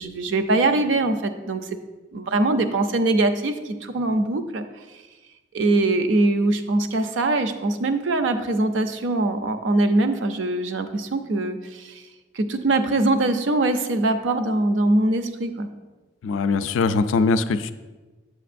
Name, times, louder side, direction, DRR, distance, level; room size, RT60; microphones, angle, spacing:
voice 1, 0.0-1.6 2.1-4.6 5.5-12.0 12.3-15.7, right 2 dB, 75° right, 8 dB, 0.5 m, -22 dB
voice 2, 16.2-17.7, left 4 dB, 80° left, 11 dB, 0.3 m, -21 dB
8.4 x 6.3 x 2.5 m, 1.2 s
head